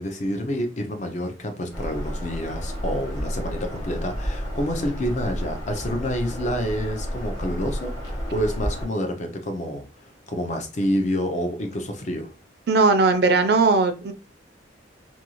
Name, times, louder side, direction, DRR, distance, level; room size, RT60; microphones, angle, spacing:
voice 1, 0.0-9.8 10.3-12.3, equal, 40° left, 0.5 m, -28 dB
Bird vocalization bird call bird song, 1.7-8.9, equal, 20° left, 0.9 m, -31 dB
voice 2, 12.7-14.1, right 3 dB, 55° right, 0.4 m, -18 dB
2.5 x 2.3 x 2.9 m
head